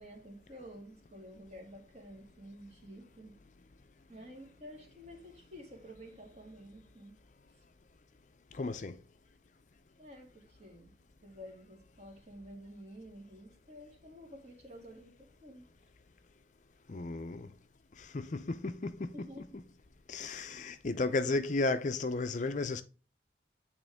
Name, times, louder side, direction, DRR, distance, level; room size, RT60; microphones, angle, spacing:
voice 1, 0.0-3.4 4.1-7.1 10.0-10.9 11.2-15.6 19.1-19.4, equal, 35° right, 1.8 m, -51 dB
voice 2, 8.5-9.0 16.9-17.5 18.0-19.3 20.1-22.8, left 3 dB, 40° left, 0.5 m, -34 dB
8.6 x 3.6 x 3.4 m
head